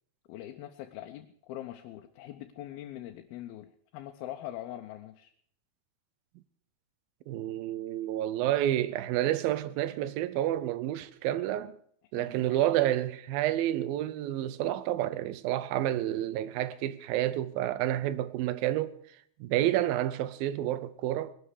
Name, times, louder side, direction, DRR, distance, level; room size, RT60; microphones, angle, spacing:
voice 1, 0.3-5.3 12.1-12.7, left 13 dB, 80° left, 2.7 m, -43 dB
voice 2, 7.3-11.8 12.1-19.0 19.4-21.3, right 13 dB, 75° right, 2.4 m, -29 dB
20.0 x 12.5 x 4.9 m
omnidirectional pair, 4.4 m